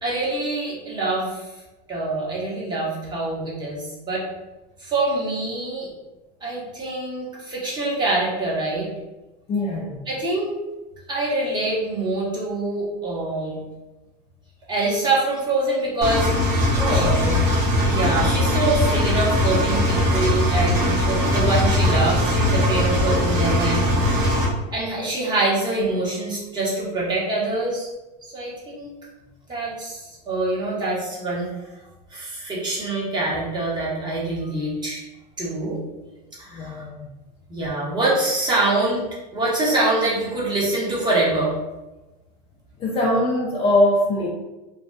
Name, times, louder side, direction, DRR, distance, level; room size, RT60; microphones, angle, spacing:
voice 1, 0.0-1.5 1.9-4.2 4.8-5.9 6.4-8.9 10.1-10.5 11.1-13.6 14.7-16.3 16.9-17.1 17.8-23.9 24.7-27.9 28.3-28.9 29.5-31.5 32.1-35.0 35.4-35.8 36.4-36.8 37.5-39.0 39.3-41.5, right 2 dB, 20° right, -6 dB, 0.9 m, -25 dB
voice 2, 9.5-10.0 16.8-17.5 36.5-37.1 42.8-44.3, left 1 dB, 30° left, -4 dB, 0.4 m, -22 dB
Engine, 16.0-24.4, left 1 dB, 40° right, 1.2 m, -20 dB
2.6 x 2.2 x 2.2 m, 1.1 s
supercardioid pair, 125°, 21 cm